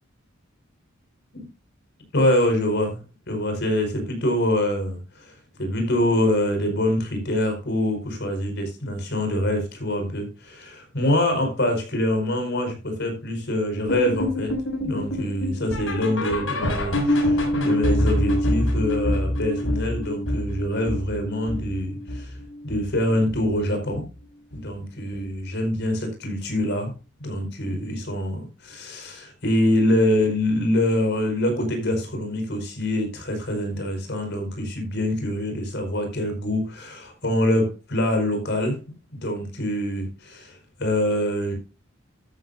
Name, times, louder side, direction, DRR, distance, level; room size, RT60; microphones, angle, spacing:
voice 1, 2.1-14.5 14.8-22.3 22.6-24.0 24.5-26.9 27.2-38.8 39.1-41.5, left 1 dB, 60° left, 5.2 m, -25 dB
sound 1, 13.9-23.0 23.3-23.6 23.9-24.0 24.5-24.6 25.1-25.2, left 1 dB, 80° left, 6.0 m, -25 dB
13.0 x 11.0 x 2.7 m
head